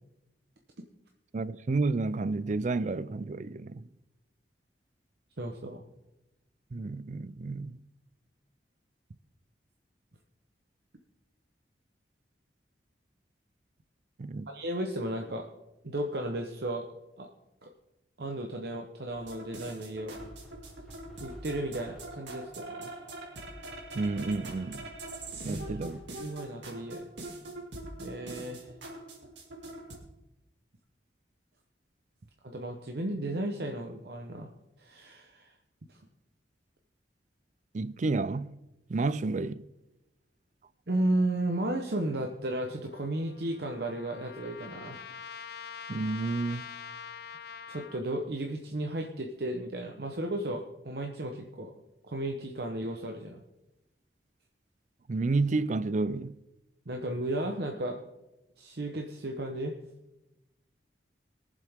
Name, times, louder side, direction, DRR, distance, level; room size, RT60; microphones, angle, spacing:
voice 1, 1.3-3.9 6.7-7.8 14.2-14.5 23.9-24.9 25.4-26.0 37.7-38.6 38.9-39.6 45.9-46.7 55.1-56.3, right 3 dB, 45° right, 0.4 m, -30 dB
voice 2, 5.4-5.8 14.5-15.5 15.8-16.9 17.2-17.3 17.6-17.7 18.2-20.2 21.2-23.0 25.4-27.1 28.0-28.7 32.4-34.5 34.8-35.5 35.9-36.0 40.9-45.0 47.7-51.7 52.0-53.4 56.9-58.0 58.6-59.7, right 1 dB, 60° right, 1.0 m, -34 dB
sound 1, 19.1-30.0, right 2 dB, 90° right, 2.6 m, -43 dB
sound 2, 20.1-22.4 23.7-26.3, equal, ahead, 2.8 m, -51 dB
Trumpet, 42.9-48.0, left 7 dB, 60° left, 0.5 m, -45 dB
22.5 x 7.5 x 3.6 m
head